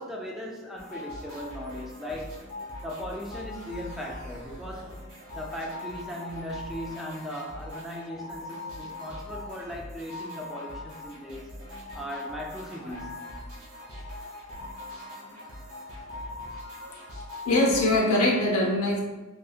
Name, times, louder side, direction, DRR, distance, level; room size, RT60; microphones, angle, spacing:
voice 1, 0.0-2.4 2.8-5.0 5.3-11.5 11.9-13.3, equal, ahead, -1 dB, 0.3 m, -38 dB
sound 1, 0.8-18.0, left 1 dB, 65° right, 1.3 m, -41 dB
voice 2, 17.4-19.0, left 1 dB, 90° left, -1 dB, 0.8 m, -22 dB
3.6 x 2.6 x 2.4 m, 1.2 s
head